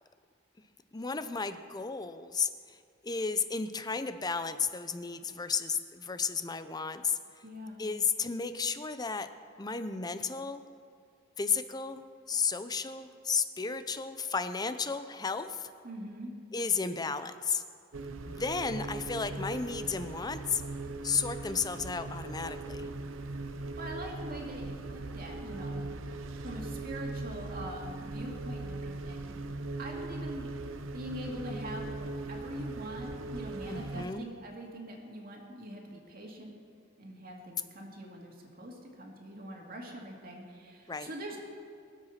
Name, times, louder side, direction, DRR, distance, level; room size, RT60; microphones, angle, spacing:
voice 1, 0.9-2.8 3.0-7.2 7.8-9.3 9.6-10.6 11.4-15.7 16.5-17.6 18.3-20.6 21.0-22.9 33.7-34.3 40.9-41.1, left 5 dB, 20° left, 10 dB, 0.6 m, -33 dB
voice 2, 7.4-7.9 15.8-16.3 23.3-25.8 26.4-29.4 29.8-30.5 30.9-36.5 37.0-41.4, right 1 dB, 45° right, 0 dB, 2.3 m, -43 dB
sound 1, 17.9-34.1, right 2 dB, 75° right, 0.8 m, -39 dB
23.0 x 7.9 x 5.8 m, 2.4 s
head